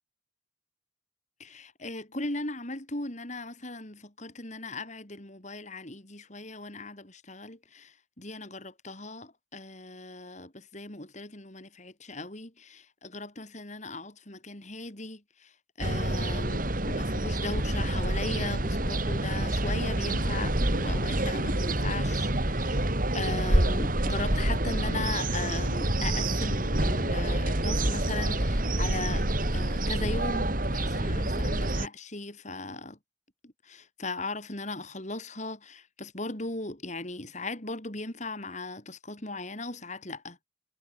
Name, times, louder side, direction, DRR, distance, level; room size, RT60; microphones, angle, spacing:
voice 1, 1.4-33.0 33.4-40.4, left 2 dB, 40° left, 3.6 m, -38 dB
sound 1, 15.8-31.9, right 1 dB, 45° right, 2.9 m, -27 dB
head